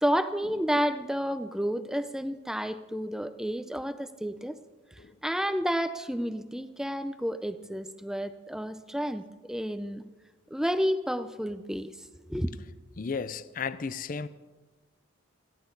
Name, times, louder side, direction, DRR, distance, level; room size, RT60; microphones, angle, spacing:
voice 1, 0.0-4.6 5.2-10.1 10.5-11.9 12.3-12.5, equal, 5° right, 0.6 m, -30 dB
voice 2, 13.0-14.3, left 5 dB, 40° left, 0.5 m, -34 dB
27.0 x 11.5 x 3.9 m
head